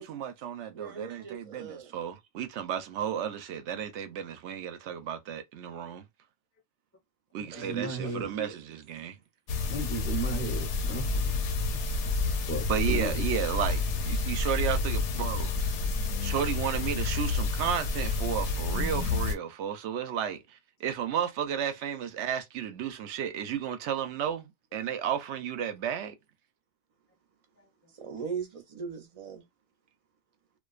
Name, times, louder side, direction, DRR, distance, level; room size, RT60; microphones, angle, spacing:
voice 1, 0.0-6.0 7.3-9.2 12.7-15.7 16.2-26.2, right 9 dB, 65° right, 0.8 m, -33 dB
voice 2, 0.7-2.0 7.5-8.8 27.9-29.4, right 6 dB, 40° right, 0.5 m, -40 dB
voice 3, 7.5-8.3 9.7-11.4 11.7-11.8 12.5-13.2, right 2 dB, 15° left, 0.4 m, -35 dB
sound 1, 9.5-19.3, left 3 dB, 65° left, 0.8 m, -29 dB
2.4 x 2.2 x 2.3 m
omnidirectional pair, 1.4 m